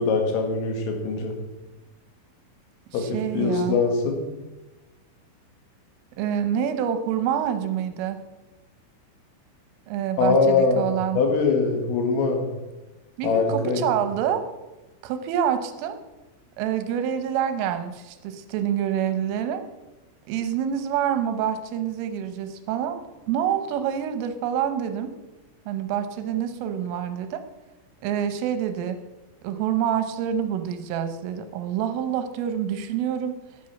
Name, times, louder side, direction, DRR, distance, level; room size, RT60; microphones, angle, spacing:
voice 1, 0.0-1.3 2.9-4.2 10.2-12.5 13.2-13.8, left 4 dB, 85° left, 3 dB, 4.5 m, -22 dB
voice 2, 2.9-3.8 6.2-8.2 9.9-11.2 13.2-14.4 15.0-16.0 16.6-19.6 20.3-25.1 25.7-27.4 28.0-29.0 29.4-33.4, right 9 dB, 80° right, 9 dB, 3.5 m, -27 dB
11.0 x 9.9 x 5.8 m, 1.1 s
omnidirectional pair, 5.7 m